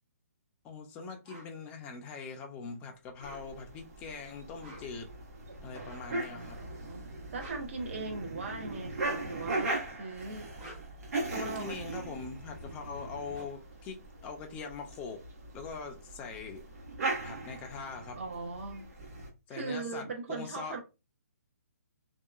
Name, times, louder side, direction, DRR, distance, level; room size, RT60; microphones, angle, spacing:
voice 1, 0.6-5.1 5.6-6.6 11.4-15.2 15.5-16.6 17.2-18.2 19.5-20.8, left 5 dB, 15° left, 0.4 m, -42 dB
sound 1, 1.2-1.5 3.0-3.8 4.5-5.1 5.8-6.2 7.1-8.4 9.4-10.0 10.4-11.1 12.7-12.8 13.0-14.7, equal, 30° right, 1.1 m, -52 dB
sound 2, 3.2-19.3, right 2 dB, 70° right, 1.3 m, -39 dB
voice 2, 6.6-7.0 7.3-10.5 11.3-12.2 18.2-18.9 19.5-20.8, right 3 dB, 50° right, 0.7 m, -39 dB
2.8 x 2.2 x 2.4 m
hypercardioid pair, 160°, 9 cm